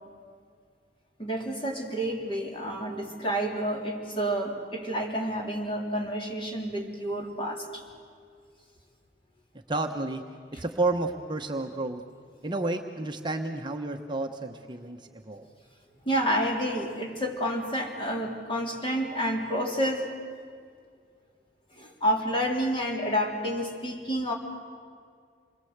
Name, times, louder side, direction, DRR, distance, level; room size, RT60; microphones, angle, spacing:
voice 1, 1.2-7.8 10.5-10.6 16.1-20.1 21.8-24.3, equal, 30° left, 0 dB, 3.5 m, -29 dB
voice 2, 9.7-10.2 10.5-12.0 12.4-15.5, right 2 dB, 25° right, 4 dB, 1.0 m, -31 dB
27.5 x 21.5 x 8.1 m, 2.2 s
head